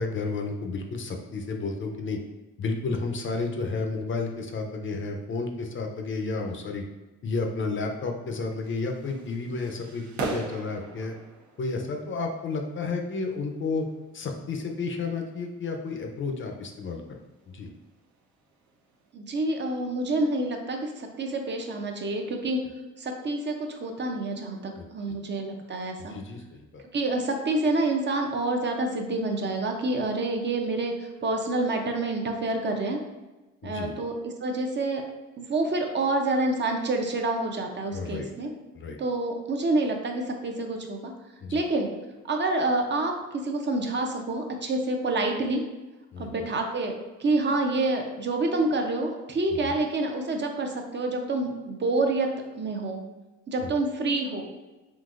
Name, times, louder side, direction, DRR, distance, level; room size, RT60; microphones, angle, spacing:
voice 1, 0.0-2.2 2.6-6.8 7.2-11.2 11.6-13.9 14.1-17.0 17.5-17.7 24.8-24.9 26.0-26.8 33.6-33.9 37.9-38.3 38.7-39.0 41.4-41.6 46.1-46.5 49.5-49.8 53.6-53.7, left 3 dB, 40° left, 3 dB, 0.5 m, -32 dB
sound 1, 8.6-19.1, right 3 dB, 70° right, 0.7 m, -42 dB
voice 2, 19.1-22.6 23.0-26.1 26.9-33.0 33.6-35.0 35.4-38.5 39.0-41.1 41.5-41.9 42.3-45.6 46.2-46.9 47.2-52.3 52.6-53.0 53.5-54.5, right 2 dB, 35° right, 3 dB, 0.5 m, -27 dB
3.8 x 2.6 x 2.4 m, 1.1 s
cardioid pair, 90°, 30 cm